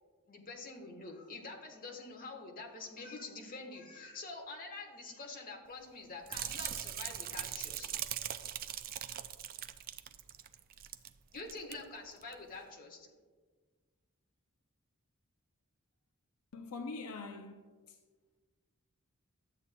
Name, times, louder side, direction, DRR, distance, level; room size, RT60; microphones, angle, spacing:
voice 1, 0.3-7.9 11.3-13.1, left 3 dB, 40° left, 1.3 m, -46 dB
sound 1, 6.3-11.1 11.4-11.7 12.2-12.3, right 11 dB, 45° right, 0.4 m, -41 dB
voice 2, 16.5-18.0, left 3 dB, 80° left, 0.5 m, -44 dB
12.5 x 8.1 x 2.2 m
head